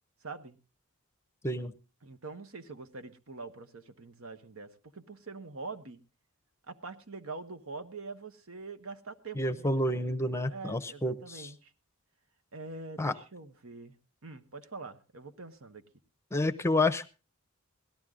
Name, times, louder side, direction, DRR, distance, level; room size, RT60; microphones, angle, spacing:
voice 1, 0.2-0.6 2.0-6.0 6.7-10.0 10.5-11.7 12.5-13.9 14.2-15.8, right 3 dB, 70° right, 9 dB, 1.2 m, -44 dB
voice 2, 9.3-11.5 13.0-13.1 16.3-17.1, left 1 dB, 10° left, 11 dB, 0.7 m, -29 dB
17.5 x 12.5 x 3.8 m, 0.32 s
head